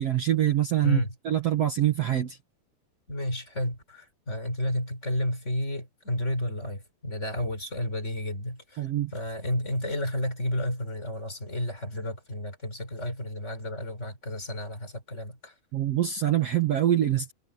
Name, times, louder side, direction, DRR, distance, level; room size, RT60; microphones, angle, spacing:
voice 1, 0.0-2.4 8.8-9.1 15.7-17.3, right 12 dB, 65° right, 1.6 m, -25 dB
voice 2, 0.8-1.1 3.1-15.5, left 1 dB, 15° left, 4.6 m, -31 dB
omnidirectional pair, 4.5 m